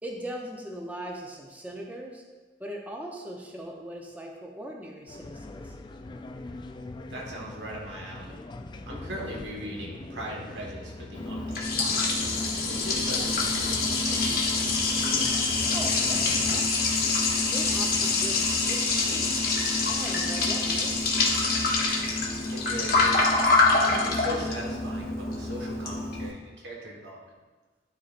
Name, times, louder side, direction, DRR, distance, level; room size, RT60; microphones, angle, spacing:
voice 1, 0.0-2.2 2.6-5.8 15.7-16.9 17.5-19.5 19.9-21.3, right 1 dB, 10° right, -1 dB, 0.6 m, -40 dB
sound 1, 5.1-16.6, left 2 dB, 25° left, 0.3 m, -42 dB
voice 2, 7.1-8.4 8.8-12.1 12.7-14.3 22.5-23.3 23.7-27.2, equal, 85° right, -2 dB, 1.5 m, -39 dB
Liquid, 11.1-26.3, left 3 dB, 55° left, 1.2 m, -25 dB
11.5 x 4.1 x 2.5 m, 1.3 s
head